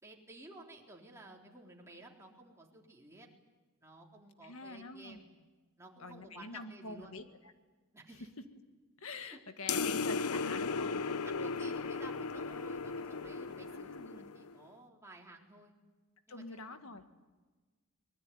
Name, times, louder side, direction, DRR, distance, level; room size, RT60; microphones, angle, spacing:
voice 1, 0.0-3.3 3.8-5.2 5.8-7.1 7.9-8.3 9.2-9.4 11.2-15.7 16.3-17.1, right 2 dB, 15° right, -1 dB, 3.8 m, -54 dB
voice 2, 4.4-5.2 6.0-7.3 9.0-11.0 13.7-14.3 16.3-17.0, left 3 dB, 70° left, 8 dB, 1.9 m, -45 dB
sound 1, 9.7-14.6, left 4 dB, 90° left, 0.8 m, -36 dB
24.0 x 21.5 x 9.7 m, 1.3 s
head